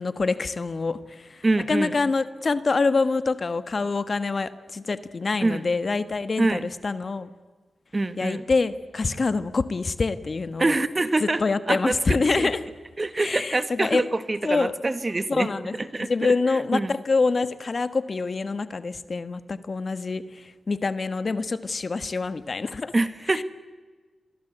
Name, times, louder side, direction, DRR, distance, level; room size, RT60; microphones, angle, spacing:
voice 1, 0.0-7.3 8.2-10.8 11.2-12.7 13.1-14.0 14.4-14.7 15.3-22.9 23.3-23.4, left 4 dB, 50° left, 12 dB, 1.5 m, -26 dB
voice 2, 1.4-1.9 5.4-5.6 6.4-6.7 7.9-8.4 10.6-11.4 11.7-12.5 13.0-17.0 22.9-23.4, right 2 dB, 35° right, 12 dB, 1.6 m, -25 dB
27.5 x 22.5 x 8.2 m, 1.4 s
cardioid pair, 55°, 0 cm